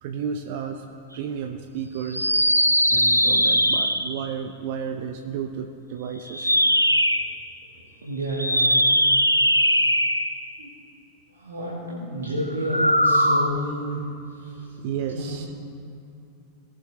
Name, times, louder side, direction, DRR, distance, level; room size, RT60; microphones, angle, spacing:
voice 1, 0.0-0.9 1.1-2.5 2.9-6.6 14.4-15.5, right 7 dB, 50° right, 5 dB, 0.6 m, -32 dB
sound 1, 2.1-4.3 6.3-7.3 8.3-10.5 12.6-13.5, equal, 90° left, 0.4 m, -20 dB
voice 2, 8.0-8.8 9.5-9.8 10.6-10.7 11.3-14.0 14.5-14.6 15.1-15.4, equal, 70° right, -4 dB, 1.6 m, -30 dB
18.5 x 7.6 x 3.3 m, 2.6 s
figure-of-eight pair, 90°, 0 cm